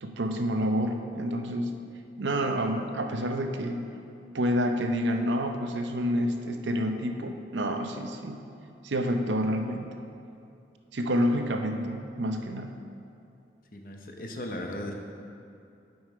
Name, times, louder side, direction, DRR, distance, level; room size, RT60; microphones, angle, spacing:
voice 1, 0.0-1.8 2.2-3.9 4.3-8.4 8.8-9.9 10.9-12.8, equal, 90° right, 5 dB, 0.6 m, -28 dB
voice 2, 13.7-14.9, left 1 dB, 50° left, 2 dB, 0.8 m, -37 dB
7.8 x 5.5 x 4.6 m, 2.6 s
head